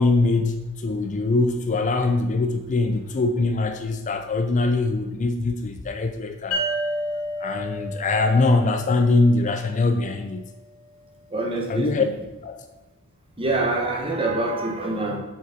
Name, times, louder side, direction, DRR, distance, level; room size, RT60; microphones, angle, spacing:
voice 1, 0.0-6.6 7.4-10.5 11.7-12.0 12.4-12.6, left 3 dB, 35° left, 7 dB, 0.4 m, -22 dB
sound 1, 6.5-10.0, equal, 70° left, 2.4 m, -31 dB
voice 2, 11.3-11.9 13.4-15.2, right 2 dB, 25° right, 0 dB, 1.4 m, -25 dB
7.5 x 6.2 x 4.2 m, 1.1 s
head